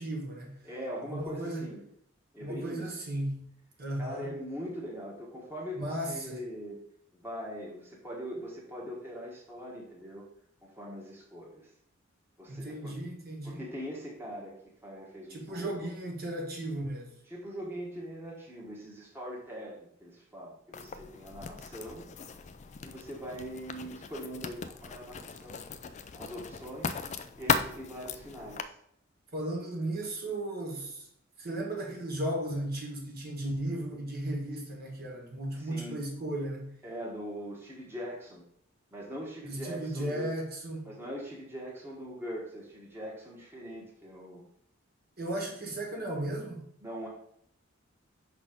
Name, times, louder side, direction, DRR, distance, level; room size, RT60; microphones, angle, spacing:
voice 1, 0.0-0.6 1.1-1.7 2.4-3.4 3.8-4.3 5.8-6.4 12.5-13.6 15.3-17.1 29.3-31.1 31.4-36.7 39.4-40.9 45.2-46.6, right 1 dB, 50° right, 1.7 m, -35 dB
voice 2, 0.6-1.8 2.3-3.0 4.0-6.8 7.1-10.3 10.6-11.7 12.4-12.9 13.4-14.6 14.8-15.9 17.3-22.1 22.8-25.6 26.2-27.0 27.4-28.7 35.5-36.0 36.8-38.5 38.9-40.3 40.8-44.4 46.8-47.1, equal, 10° right, 1.4 m, -42 dB
Writing, 20.7-28.6, left 5 dB, 35° left, 0.4 m, -37 dB
5.9 x 4.1 x 5.1 m
head